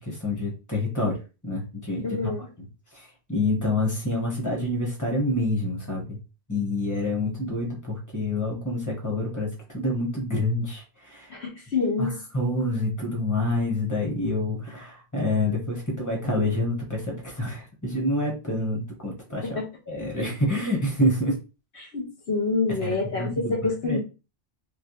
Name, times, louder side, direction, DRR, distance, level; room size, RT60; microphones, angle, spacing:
voice 1, 0.1-1.2 1.4-2.3 2.9-6.2 6.5-11.3 12.0-12.1 12.3-19.6 19.9-21.4 22.8-23.5 23.8-24.0, left 1 dB, 15° left, -1 dB, 1.4 m, -27 dB
voice 2, 2.0-2.5 11.3-12.2 19.4-19.6 21.8-24.0, left 3 dB, 90° left, -1 dB, 1.5 m, -27 dB
3.6 x 3.0 x 3.1 m, 0.31 s
omnidirectional pair, 1.1 m